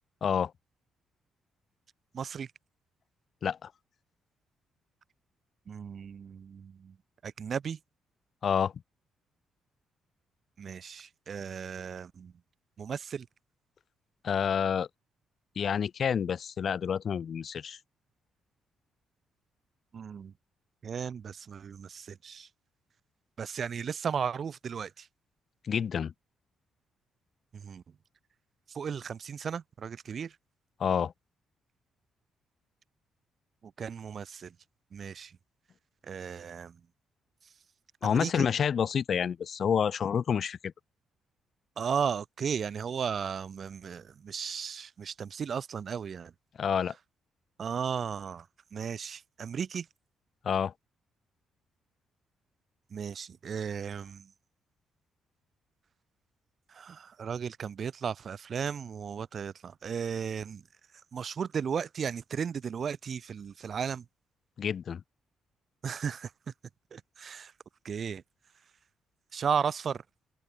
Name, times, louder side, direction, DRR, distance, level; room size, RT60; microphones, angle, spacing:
voice 1, 0.2-0.5 3.4-3.7 8.4-8.7 14.2-14.9 15.6-17.8 25.6-26.1 30.8-31.1 38.0-40.7 46.6-46.9 50.4-50.7 64.6-65.0, left 7 dB, 55° left, 0.8 m, -28 dB
voice 2, 2.1-2.5 5.7-6.9 7.2-7.8 10.6-12.3 12.8-13.3 19.9-20.3 20.8-22.5 23.4-25.1 27.5-27.8 28.7-30.3 33.6-34.5 34.9-35.3 36.0-36.8 38.0-38.5 41.8-46.3 47.6-48.5 48.7-49.9 52.9-54.3 56.7-60.6 61.1-64.0 65.8-66.3 66.9-67.5 67.8-68.2 69.3-70.0, right 7 dB, 50° right, 2.7 m, -35 dB
open air
cardioid pair, 80°, 0 cm